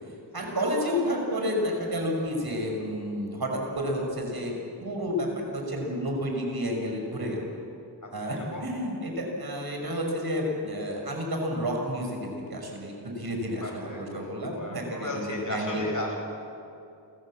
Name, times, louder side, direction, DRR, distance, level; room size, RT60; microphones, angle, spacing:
voice 1, 0.3-4.6 4.8-7.4 8.1-15.8, equal, 55° right, 1 dB, 6.0 m, -30 dB
voice 2, 13.6-16.2, left 1 dB, 45° left, 0 dB, 6.9 m, -36 dB
29.0 x 14.5 x 7.7 m, 2.7 s
cardioid pair, 50°, 44 cm